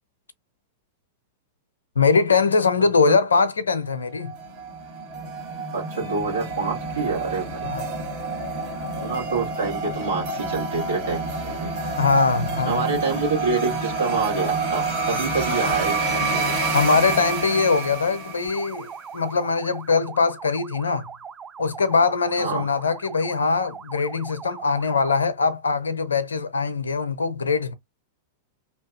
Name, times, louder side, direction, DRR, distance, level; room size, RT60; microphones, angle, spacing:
voice 1, 2.0-4.3 7.6-7.8 12.0-12.8 15.5-15.6 16.7-21.1 21.6-27.7, left 4 dB, 75° left, 0.6 m, -22 dB
sound 1, 4.2-18.9, right 3 dB, 50° right, 1.3 m, -28 dB
voice 2, 5.7-7.6 9.0-11.7 12.7-16.6 22.4-22.7, right 4 dB, 75° right, 1.6 m, -27 dB
sound 2, 18.5-25.3, right 6 dB, 20° right, 0.4 m, -40 dB
2.8 x 2.5 x 2.4 m
figure-of-eight pair, 95°, 0 cm